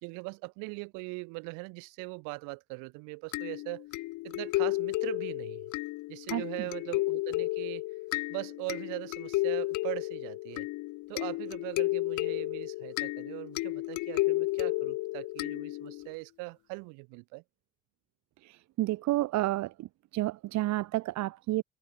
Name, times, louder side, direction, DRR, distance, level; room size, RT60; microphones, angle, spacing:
voice 1, 0.0-3.9 4.2-5.6 6.1-7.8 8.3-10.7 11.1-17.4, right 31 dB, 85° right, 4.7 m, -40 dB
sound 1, 3.3-16.1, left 20 dB, 70° left, 0.6 m, -32 dB
voice 2, 18.4-19.9 20.1-21.6, right 17 dB, 65° right, 0.6 m, -30 dB
supercardioid pair, 60°, 31 cm